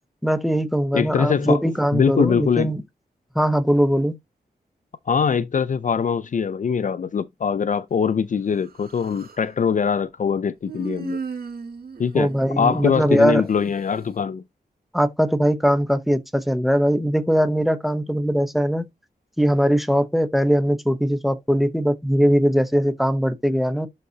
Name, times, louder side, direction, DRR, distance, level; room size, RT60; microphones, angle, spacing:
voice 1, 0.2-2.8 3.3-4.2 12.1-13.5 14.9-18.9 19.4-23.9, equal, ahead, 0.8 m, -20 dB
voice 2, 0.9-1.6 1.9-2.7 5.1-11.2 12.0-12.3 12.6-14.4, left 6 dB, 50° left, 0.4 m, -22 dB
Human voice, 8.5-9.5 10.6-13.4, right 5 dB, 70° right, 1.9 m, -36 dB
11.0 x 4.1 x 2.8 m
wide cardioid pair, 155°, 16 cm